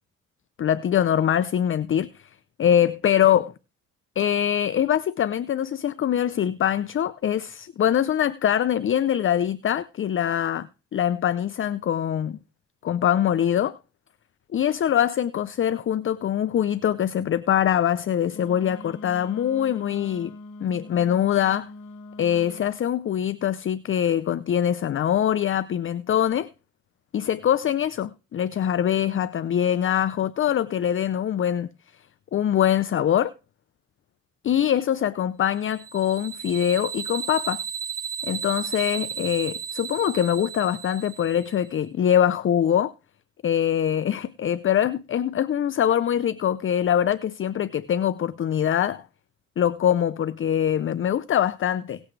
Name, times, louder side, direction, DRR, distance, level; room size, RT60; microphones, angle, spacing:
voice 1, 0.6-2.3 2.6-3.4 4.2-10.7 10.9-12.4 12.8-13.8 14.5-20.3 20.6-21.7 22.2-26.5 27.1-31.7 32.3-33.3 34.4-37.6 38.2-42.9 43.4-49.0 49.6-52.0, left 10 dB, 45° left, 0.6 m, -23 dB
Wind instrument woodwind instrument, 18.3-22.7, left 2 dB, 75° left, 1.6 m, -42 dB
sound 1, 35.6-41.6, right 8 dB, 50° right, 1.0 m, -34 dB
18.0 x 8.2 x 3.2 m
cardioid pair, 90°, 30 cm